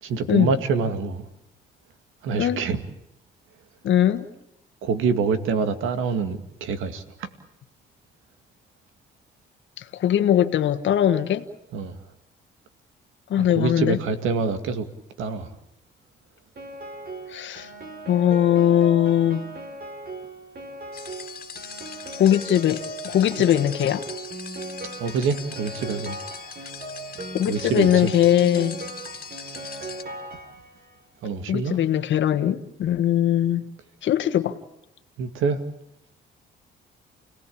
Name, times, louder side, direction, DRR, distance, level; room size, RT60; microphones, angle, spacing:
voice 1, 0.0-1.2 2.2-2.8 4.8-7.3 11.7-12.0 13.4-14.9 15.2-15.5 23.4-23.5 25.0-26.2 27.5-28.1 31.2-31.8 35.2-35.6, right 5 dB, 85° right, 2.2 m, -26 dB
voice 2, 3.8-4.3 9.8-11.5 13.3-14.0 17.3-17.7 18.1-19.4 22.1-24.0 27.3-28.8 31.5-33.6 34.0-34.5, left 10 dB, 70° left, 1.5 m, -20 dB
Piano, 16.6-30.9, right 2 dB, 50° right, 5.2 m, -38 dB
sound 1, 20.9-30.0, left 6 dB, 50° left, 2.3 m, -40 dB
30.0 x 18.0 x 8.7 m
cardioid pair, 90°, 20 cm